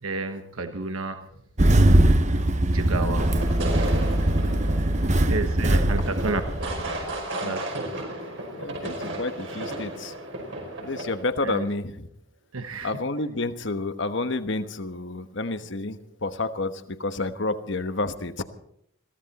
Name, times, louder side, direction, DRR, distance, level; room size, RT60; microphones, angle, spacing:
voice 1, 0.0-1.3 2.7-3.3 5.3-6.4 7.4-7.9 11.4-11.6 12.5-12.9, right 3 dB, 85° right, 7 dB, 1.2 m, -31 dB
Engine starting, 1.6-7.1, right 1 dB, 35° right, 0.9 m, -21 dB
sound 1, 3.2-11.2, right 1 dB, 65° right, 5.2 m, -34 dB
voice 2, 8.5-10.1 10.8-12.1 12.8-18.4, left 2 dB, 60° left, 10 dB, 1.2 m, -30 dB
22.0 x 15.5 x 4.2 m, 0.73 s
head